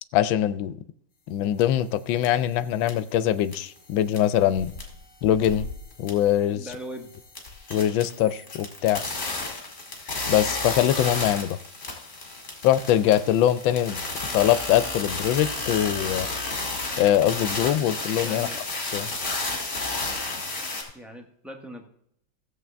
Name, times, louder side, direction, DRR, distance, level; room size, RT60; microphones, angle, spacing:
voice 1, 0.1-0.8 1.3-4.7 5.2-5.7 6.0-6.7 7.7-9.0 10.3-11.6 12.6-14.0 14.3-16.3 17.0-18.5 18.9-19.1, left 11 dB, 85° left, 15 dB, 1.3 m, -22 dB
sound 1, 1.6-1.7 2.2-2.3 2.8-3.2 3.5-3.8 4.1-4.9 5.2-6.3 6.7-6.8 7.1-20.8, left 3 dB, 40° left, 2.3 m, -32 dB
voice 2, 6.5-7.1 18.2-18.7 20.9-21.9, equal, ahead, 3 dB, 0.4 m, -39 dB
14.5 x 7.5 x 3.4 m, 0.71 s
omnidirectional pair, 2.1 m